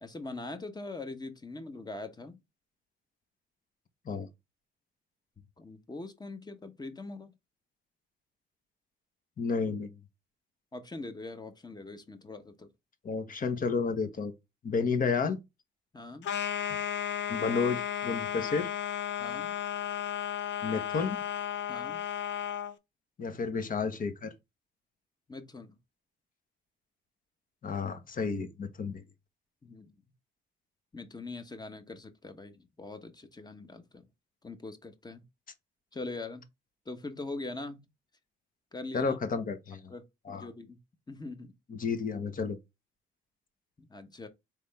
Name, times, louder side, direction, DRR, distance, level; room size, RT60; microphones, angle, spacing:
voice 1, 0.0-2.4 5.6-7.3 10.7-12.7 15.9-16.3 19.2-19.5 21.7-22.0 25.3-25.8 29.6-29.9 30.9-34.0 34.4-35.2 35.9-36.4 36.9-37.9 38.7-39.2 39.9-40.8 41.1-41.5 43.8-44.3, left 2 dB, 20° left, 1.1 m, -42 dB
voice 2, 9.4-9.9 13.0-14.3 14.6-15.4 17.3-18.7 20.6-21.2 23.2-24.3 27.6-29.0 38.9-39.9 40.3-40.5 41.7-42.6, left 5 dB, 45° left, 1.2 m, -31 dB
sound 1, 16.2-22.7, left 10 dB, 65° left, 0.7 m, -34 dB
4.4 x 3.5 x 3.4 m
cardioid pair, 90°, 20 cm